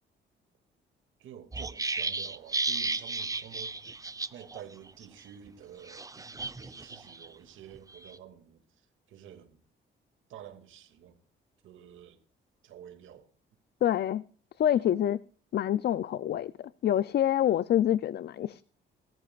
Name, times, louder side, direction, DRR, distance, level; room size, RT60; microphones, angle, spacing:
voice 1, 1.2-3.8 4.3-9.6 10.3-11.2 11.6-12.2 12.6-13.3 14.7-14.9, right 9 dB, 80° right, 2.5 m, -49 dB
sound 1, 1.5-4.6 4.9-5.0 5.9-7.3 7.8-8.2, right 3 dB, 15° right, 0.8 m, -34 dB
voice 2, 13.8-14.2 14.6-15.2 15.5-18.6, left 11 dB, 55° left, 0.5 m, -26 dB
22.0 x 13.5 x 2.5 m
cardioid pair, 90°, 20 cm